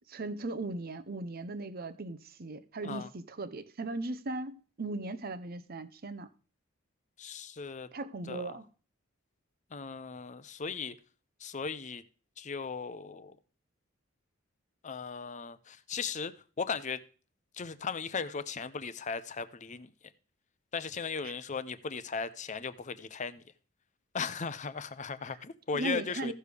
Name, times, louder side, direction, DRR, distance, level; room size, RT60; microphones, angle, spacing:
voice 1, 0.1-6.3 7.9-8.6 21.2-21.3 25.3-25.4 25.7-26.3, right 2 dB, 45° right, 0.7 m, -38 dB
voice 2, 7.2-7.9 8.3-8.6 9.7-10.9 11.4-12.0 12.4-13.3 14.8-16.3 16.6-17.0 17.5-19.9 20.7-23.4 24.1-26.3, left 5 dB, 35° left, 0.6 m, -37 dB
15.0 x 6.6 x 3.4 m
head